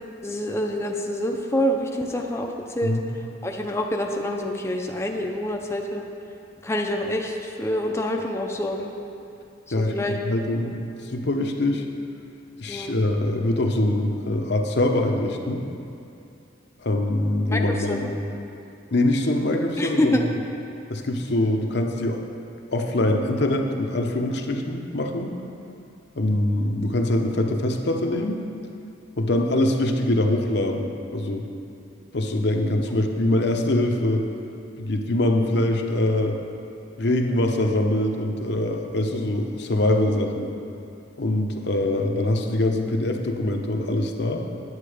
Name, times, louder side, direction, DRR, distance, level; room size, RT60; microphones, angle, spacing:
voice 1, 0.2-3.0 3.4-6.0 6.6-8.9 9.9-10.2 12.7-13.0 17.5-18.1 19.8-20.2 40.0-40.2, left 1 dB, 15° left, 1 dB, 0.5 m, -26 dB
voice 2, 10.2-10.8 11.0-11.8 12.6-15.6 16.8-18.1 18.9-20.2 20.9-22.2 22.7-25.3 26.2-28.4 29.2-31.5 32.1-34.3 34.8-36.4 37.0-40.5 41.2-44.4, left 1 dB, 65° left, 3 dB, 0.8 m, -23 dB
9.7 x 7.6 x 5.0 m, 2.6 s
head